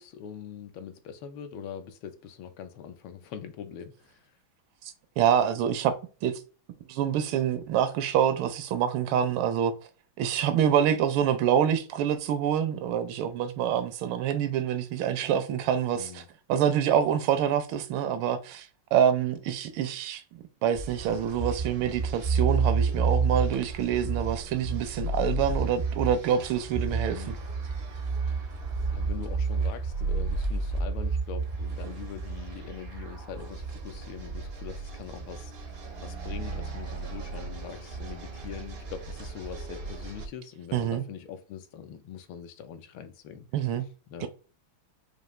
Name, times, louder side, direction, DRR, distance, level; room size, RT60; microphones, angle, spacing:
voice 1, 0.0-4.2 15.9-16.3 27.1-27.4 28.3-43.5 44.1-44.3, left 8 dB, 80° left, 1.5 m, -43 dB
voice 2, 5.2-5.9 6.2-6.4 6.9-9.7 10.2-16.2 16.5-20.2 20.6-27.4 40.7-41.0 43.5-43.9 44.2-44.3, right 9 dB, 85° right, 1.5 m, -26 dB
sound 1, 20.8-40.3, right 4 dB, 70° right, 0.5 m, -31 dB
5.1 x 2.5 x 3.1 m
omnidirectional pair, 2.2 m